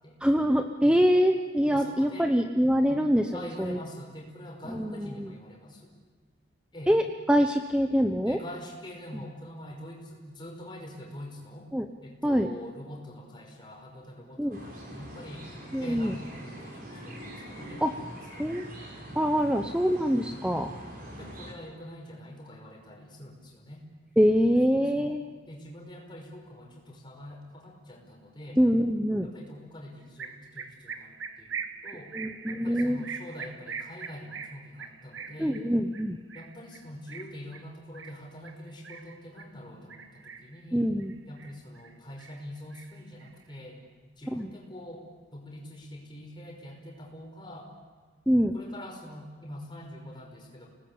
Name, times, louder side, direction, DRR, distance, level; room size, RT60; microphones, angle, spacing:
voice 1, 0.2-3.3 3.6-3.8 4.7-5.3 6.9-8.4 11.7-11.9 12.2-12.5 14.4-14.6 15.7-16.1 17.8-17.9 18.4-18.6 19.1-20.7 24.2-25.2 28.6-29.3 32.1-33.0 35.4-36.2 40.7-41.1 44.3-44.5 48.3-48.5, equal, 5° right, 5 dB, 0.8 m, -24 dB
voice 2, 1.7-2.3 2.8-5.9 6.7-6.9 8.2-11.7 12.0-15.5 15.8-18.8 21.0-23.8 24.4-25.2 25.5-28.6 29.2-32.1 32.5-35.6 36.3-40.9 41.3-43.8 44.2-45.1 45.3-47.7 48.5-50.7, left 1 dB, 25° left, 0 dB, 5.5 m, -45 dB
sound 1, 14.5-21.5, right 1 dB, 50° right, 5.5 m, -43 dB
sound 2, 30.2-39.5 39.9-40.6 41.0-41.9 42.2-43.5, right 6 dB, 90° right, 1.5 m, -42 dB
30.0 x 19.5 x 8.6 m, 1.4 s
head